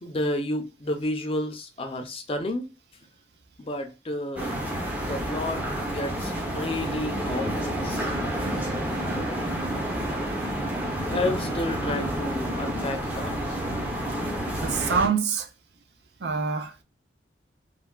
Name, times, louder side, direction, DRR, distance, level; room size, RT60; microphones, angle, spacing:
voice 1, 0.0-2.6 3.6-4.6 4.9-8.4 11.1-13.4, left 1 dB, 30° left, 0.5 m, -31 dB
sound 1, 4.4-15.1, right 1 dB, 10° right, 0.6 m, -29 dB
voice 2, 14.6-15.5 16.2-16.8, right 6 dB, 65° right, 0.5 m, -25 dB
3.3 x 2.2 x 2.2 m
head